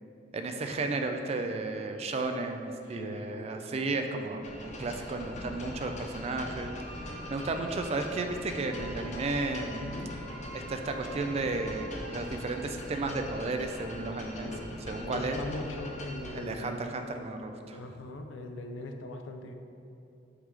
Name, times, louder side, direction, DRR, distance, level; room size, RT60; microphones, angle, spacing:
voice 1, 0.3-6.7 7.3-9.8 10.5-14.5 14.9-15.4 16.3-17.8, right 3 dB, 35° right, 5 dB, 0.4 m, -33 dB
voice 2, 2.8-3.2 9.7-10.1 14.4-14.7 15.0-16.8 17.7-19.5, left 2 dB, 90° left, 5 dB, 0.5 m, -40 dB
sound 1, 4.4-16.4, left 1 dB, 40° left, 0.6 m, -42 dB
sound 2, 6.7-12.2, right 2 dB, 85° right, 0.6 m, -48 dB
7.9 x 3.7 x 3.3 m, 2.7 s
head